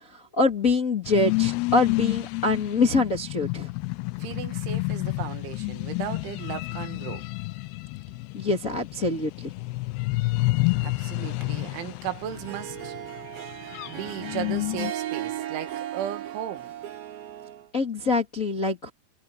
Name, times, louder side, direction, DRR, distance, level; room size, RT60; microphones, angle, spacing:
voice 1, 0.1-3.7 8.3-9.5 17.7-18.9, left 3 dB, 35° left, 1.3 m, -24 dB
sound 1, 1.1-14.9, left 23 dB, 85° left, 2.4 m, -30 dB
voice 2, 4.2-7.2 10.8-12.9 13.9-16.7, right 11 dB, 85° right, 4.1 m, -36 dB
Harp, 12.3-17.6, right 12 dB, 60° right, 3.5 m, -36 dB
omnidirectional pair, 5.3 m